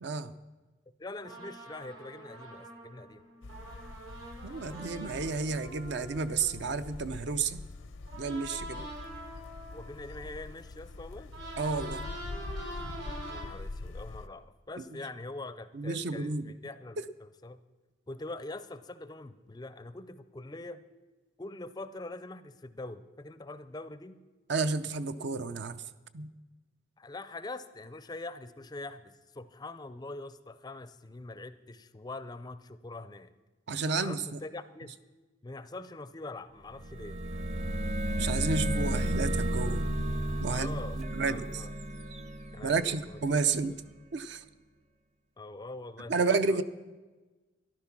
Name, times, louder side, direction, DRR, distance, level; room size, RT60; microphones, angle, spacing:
voice 1, 0.0-0.3 4.4-7.6 8.2-8.8 11.6-12.0 15.7-16.5 24.5-25.8 26.1-26.3 33.7-34.4 38.2-39.8 40.4-40.8 41.1-41.6 42.6-43.8 44.1-44.4 46.1-46.6, right 4 dB, 60° right, 12 dB, 0.6 m, -31 dB
voice 2, 1.0-3.2 9.7-11.3 13.3-17.6 18.1-20.8 21.4-24.2 27.0-33.3 34.0-34.9 35.4-37.2 40.5-41.7 42.5-43.2 45.4-46.6, left 2 dB, 20° left, 13 dB, 0.4 m, -43 dB
sound 1, 1.2-7.6 8.1-13.4, right 1 dB, 75° right, 4.3 m, -45 dB
sound 2, 3.4-14.3, left 2 dB, 75° left, 0.6 m, -44 dB
sound 3, 36.7-43.4, equal, 35° right, 0.8 m, -33 dB
13.5 x 11.5 x 6.0 m, 1.2 s
head